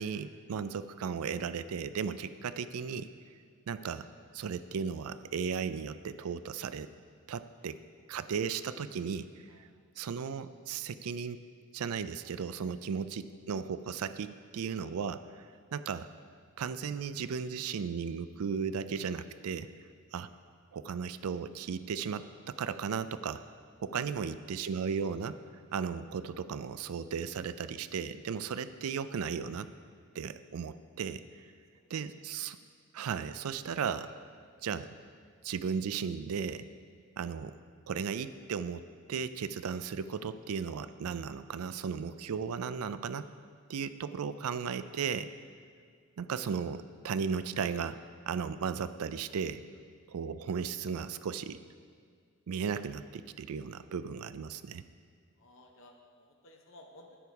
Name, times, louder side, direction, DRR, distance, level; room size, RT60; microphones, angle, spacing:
voice 1, 0.0-3.1 3.7-4.1 4.3-6.9 7.3-7.8 8.1-9.3 9.6-9.7 10.0-11.4 11.7-15.5 15.7-16.1 16.6-19.7 20.1-20.3 20.7-23.4 23.8-25.4 25.7-29.7 30.1-31.2 31.9-32.6 32.9-34.1 34.6-34.9 35.4-36.7 37.2-37.6 37.9-38.8 39.1-43.3 43.7-45.3 46.2-48.0 48.3-49.6 50.1-51.6 52.5-54.8, right 6 dB, 90° right, 13 dB, 0.4 m, -35 dB
voice 2, 24.0-24.6 31.7-32.2 32.6-32.7 55.4-57.2, left 1 dB, 65° left, 2 dB, 0.8 m, -58 dB
10.0 x 7.0 x 4.7 m, 2.1 s
head